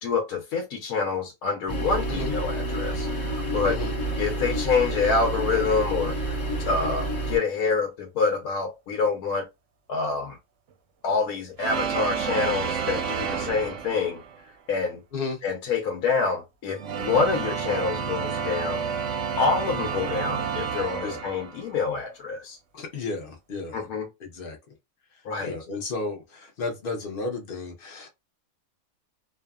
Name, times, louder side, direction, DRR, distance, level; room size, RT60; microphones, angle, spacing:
voice 1, 0.0-3.8 4.2-6.3 6.6-9.5 9.9-10.4 11.0-14.2 14.7-15.0 15.4-18.9 19.4-22.6 23.7-24.1 25.2-25.6, left 4 dB, 85° left, 1.1 m, -27 dB
sound 1, 1.7-7.4, right 1 dB, 35° left, 1.0 m, -29 dB
sound 2, 11.6-14.4 16.6-21.8, right 6 dB, 70° right, 0.8 m, -30 dB
voice 2, 15.1-15.4 21.0-21.2 22.7-23.8 24.2-24.6 25.4-28.1, left 3 dB, 50° left, 0.7 m, -33 dB
2.7 x 2.3 x 2.2 m
omnidirectional pair, 1.5 m